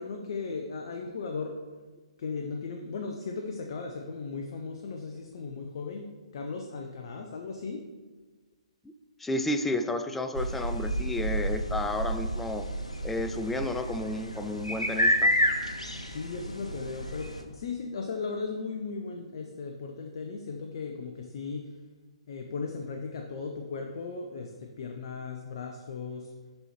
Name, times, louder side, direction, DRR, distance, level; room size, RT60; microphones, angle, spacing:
voice 1, 0.0-1.6 2.2-6.1 6.3-7.8 15.7-21.8 22.3-26.3, left 4 dB, 45° left, 3 dB, 0.7 m, -37 dB
voice 2, 9.2-12.7 13.0-15.3, left 1 dB, 5° left, 7 dB, 0.3 m, -32 dB
sound 1, 10.3-17.4, equal, 90° left, 0.9 m, -30 dB
11.5 x 4.3 x 3.0 m, 1.4 s
figure-of-eight pair, 130°, 3 cm